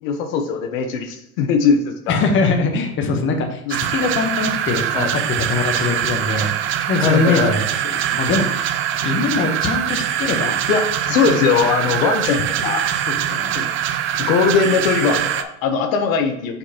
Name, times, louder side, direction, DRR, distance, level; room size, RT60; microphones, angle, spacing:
voice 1, 0.0-2.2 3.7-3.8 4.9-5.1 7.0-7.5 10.7-12.8 13.5-13.7 14.3-16.6, left 5 dB, 65° left, 5 dB, 1.0 m, -20 dB
voice 2, 2.1-6.5 6.9-10.6 11.2-11.3 12.4-13.5, left 4 dB, 25° left, 3 dB, 1.0 m, -22 dB
sound 1, 3.7-15.4, right 10 dB, 30° right, 0.4 m, -23 dB
6.2 x 5.3 x 2.9 m, 0.82 s
hypercardioid pair, 105°, 44 cm